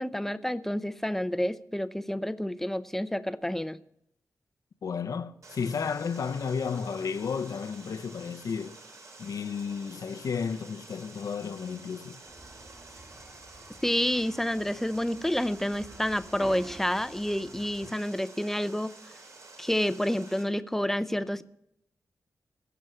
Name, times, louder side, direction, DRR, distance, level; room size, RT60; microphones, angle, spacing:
voice 1, 0.0-3.8 13.8-18.9 19.6-21.4, left 1 dB, 5° left, 0.5 m, -29 dB
voice 2, 4.8-8.8 9.2-12.2, left 6 dB, 70° left, 0.7 m, -33 dB
Water, 5.4-20.4, right 3 dB, 60° right, 2.9 m, -50 dB
sound 1, 12.2-17.9, right 1 dB, 30° right, 2.0 m, -49 dB
17.0 x 7.0 x 7.7 m
wide cardioid pair, 130°, 6 cm